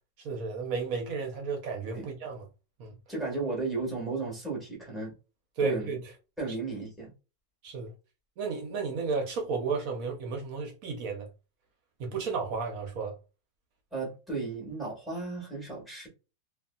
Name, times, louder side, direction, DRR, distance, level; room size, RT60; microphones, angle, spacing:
voice 1, 0.2-2.5 2.8-3.0 5.6-6.0 7.6-7.9 8.4-11.3 12.0-13.2, right 4 dB, 65° right, 1.0 m, -33 dB
voice 2, 3.1-5.1 5.6-6.0 6.4-7.1 13.9-16.1, right 3 dB, ahead, 1.1 m, -34 dB
2.9 x 2.5 x 2.3 m
omnidirectional pair, 1.8 m